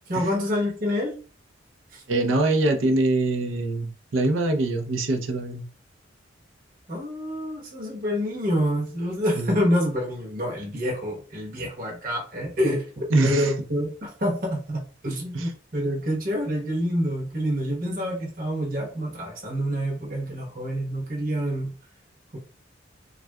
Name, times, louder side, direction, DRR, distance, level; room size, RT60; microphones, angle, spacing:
voice 1, 0.1-1.1 1.9-2.0 6.9-21.7 22.3-22.4, equal, 45° right, -2 dB, 0.9 m, -27 dB
voice 2, 2.1-5.6 9.4-9.5 13.1-13.5 15.3-15.5, right 2 dB, 85° right, 4 dB, 0.6 m, -23 dB
3.5 x 2.4 x 2.2 m, 0.38 s
head